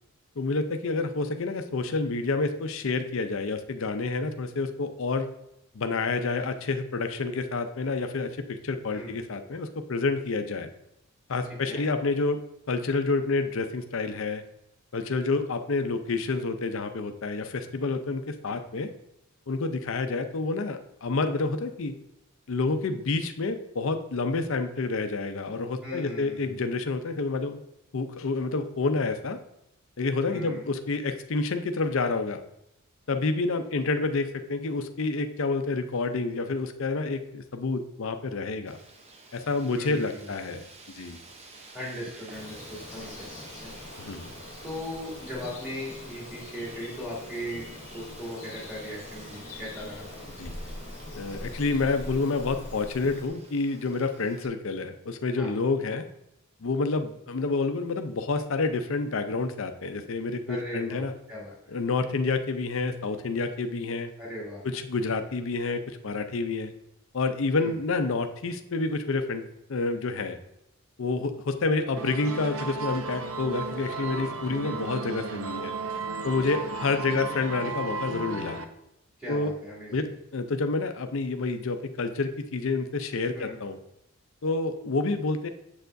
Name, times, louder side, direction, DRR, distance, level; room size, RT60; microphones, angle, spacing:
voice 1, 0.4-5.3 5.7-10.7 11.3-12.4 12.7-14.4 14.9-18.9 19.5-21.9 22.5-27.6 27.9-29.4 30.0-32.4 33.1-38.8 39.3-40.6 40.9-41.2 44.0-44.3 47.5-47.6 50.4-50.5 51.2-56.1 56.6-61.1 61.7-64.1 64.6-66.7 67.1-69.4 69.7-70.4 71.0-75.7 76.2-78.6 79.3-79.5 79.9-83.8 84.4-85.5, left 3 dB, 60° left, 8 dB, 0.5 m, -28 dB
voice 2, 11.4-11.8 25.8-26.6 30.3-30.7 39.7-40.7 41.7-43.3 43.6-43.8 44.6-50.2 55.4-55.5 60.5-61.7 64.2-64.6 67.5-67.7 79.2-79.9 83.3-83.6, equal, 5° right, -7 dB, 2.5 m, -38 dB
Wind, 38.7-54.5, right 3 dB, 30° right, 0.7 m, -50 dB
Bird vocalization bird call bird song, 42.3-53.3, left 1 dB, 35° left, 1.1 m, -43 dB
sound 1, 72.0-78.6, right 4 dB, 65° right, 0.6 m, -34 dB
7.2 x 6.8 x 2.6 m, 0.83 s
head